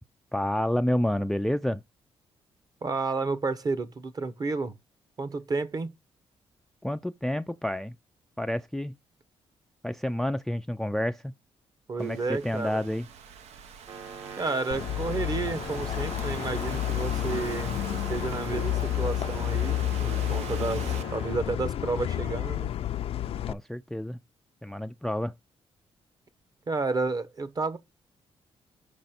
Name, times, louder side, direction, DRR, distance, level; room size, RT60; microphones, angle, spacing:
voice 1, 0.3-1.8 6.8-7.9 8.4-8.9 9.8-11.3 12.0-13.1 23.5-24.2 24.6-25.3, left 1 dB, 5° left, 0.3 m, -29 dB
voice 2, 2.8-4.7 5.2-5.9 11.9-12.9 14.4-22.7 26.7-27.8, right 3 dB, 35° right, 1.0 m, -31 dB
Thunderstorm / Rain, 12.0-21.0, right 7 dB, 90° right, 0.9 m, -44 dB
sound 1, 13.9-21.4, right 6 dB, 70° right, 2.6 m, -42 dB
sound 2, 14.7-23.5, left 12 dB, 65° left, 0.5 m, -30 dB
6.0 x 5.2 x 4.3 m
cardioid pair, 110°, 11 cm